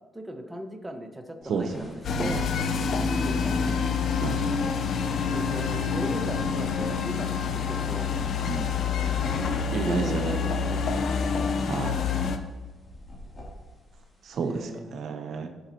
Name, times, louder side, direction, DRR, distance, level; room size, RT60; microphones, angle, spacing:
voice 1, 0.1-2.5 3.1-3.8 5.3-8.2 8.8-10.8 14.4-15.0, equal, 10° right, 4 dB, 1.1 m, -38 dB
sound 1, 1.4-14.8, equal, 30° left, 2.8 m, -47 dB
sound 2, 2.0-12.4, left 5 dB, 60° left, 0.6 m, -27 dB
voice 2, 9.7-10.4 11.7-12.0 14.2-15.5, right 5 dB, 65° right, 6 dB, 0.7 m, -31 dB
14.0 x 5.9 x 2.9 m, 1.2 s
cardioid pair, 80°, 0 cm